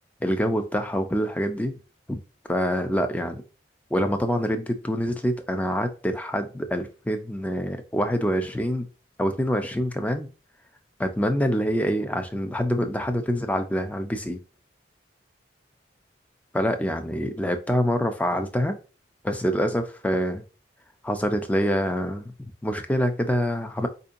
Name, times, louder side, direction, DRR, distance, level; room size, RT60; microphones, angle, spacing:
voice 1, 0.2-1.7 2.1-2.2 2.5-3.4 3.9-8.9 9.2-10.3 11.0-14.4 16.5-18.8 19.2-20.4 21.0-22.2 22.6-23.9, equal, 10° left, 7 dB, 0.4 m, -25 dB
4.4 x 2.7 x 2.5 m, 0.34 s
head